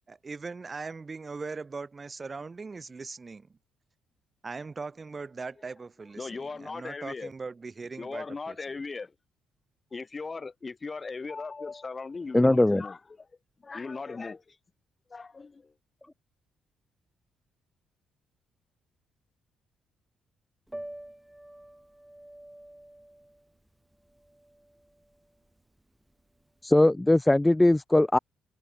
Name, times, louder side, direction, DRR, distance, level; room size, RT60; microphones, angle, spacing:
voice 1, 0.1-3.6 4.4-8.6, right 4 dB, 30° right, 1.3 m, -40 dB
voice 2, 6.1-7.3 8.0-9.1 9.9-13.3 13.6-14.6 15.1-15.7, left 4 dB, 30° left, 1.0 m, -38 dB
voice 3, 12.3-12.8 26.6-28.2, left 1 dB, 10° left, 0.4 m, -20 dB
Piano, 20.7-26.6, right 1 dB, 5° right, 1.6 m, -48 dB
cardioid pair, 90°, 0 cm